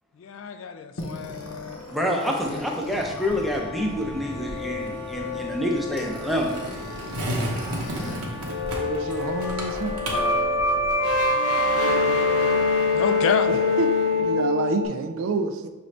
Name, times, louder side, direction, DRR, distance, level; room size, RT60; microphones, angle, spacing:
voice 1, 0.1-1.9 2.5-2.6 12.9-13.5, left 6 dB, 60° left, 8 dB, 0.3 m, -29 dB
sound 1, 1.0-8.2 8.4-14.9, left 3 dB, 75° left, 0.8 m, -26 dB
voice 2, 1.9-6.5, equal, ahead, -1 dB, 0.5 m, -27 dB
Wind instrument woodwind instrument, 2.6-10.1, left 2 dB, 25° left, 1.1 m, -42 dB
Skateboard, 3.3-11.3, equal, 80° right, 0.9 m, -34 dB
voice 3, 8.8-10.0 13.5-13.9 14.2-15.7, right 4 dB, 60° right, 7 dB, 0.3 m, -28 dB
6.1 x 2.6 x 3.2 m, 1.2 s
head